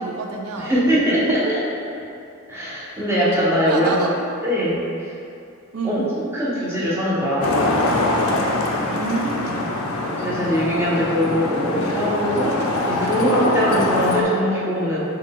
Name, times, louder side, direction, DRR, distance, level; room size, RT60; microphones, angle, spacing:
voice 1, 0.0-0.7 1.1-1.5 3.7-4.2 5.7-6.1 8.8-9.7, right 3 dB, 85° right, 2 dB, 0.4 m, -27 dB
voice 2, 0.6-1.4 2.5-4.0 4.4-5.1 5.8-7.6 9.9-15.0, equal, 10° right, -8 dB, 0.8 m, -22 dB
Traffic noise roadway noise, 7.4-14.2, left 2 dB, 80° left, 0.4 m, -23 dB
4.8 x 2.3 x 3.6 m, 2.7 s
head